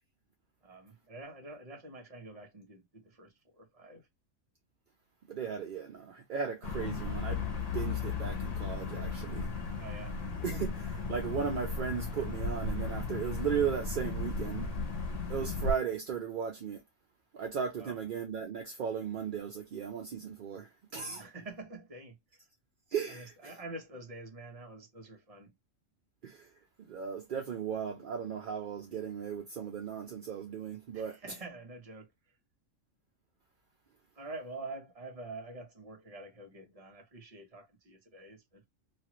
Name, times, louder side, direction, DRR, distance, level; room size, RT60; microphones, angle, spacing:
voice 1, 0.6-4.1 9.8-10.2 17.8-18.0 21.2-22.2 23.1-25.5 30.9-32.1 34.2-38.6, right 2 dB, 30° right, 0.9 m, -47 dB
voice 2, 5.3-7.5 7.7-9.5 10.4-14.7 15.3-16.8 17.3-21.2 22.9-23.5 26.2-26.5 26.9-31.2, right 7 dB, 55° right, 0.6 m, -36 dB
sound 1, 6.6-15.7, left 4 dB, 70° left, 1.2 m, -35 dB
3.0 x 2.4 x 2.9 m
omnidirectional pair, 1.4 m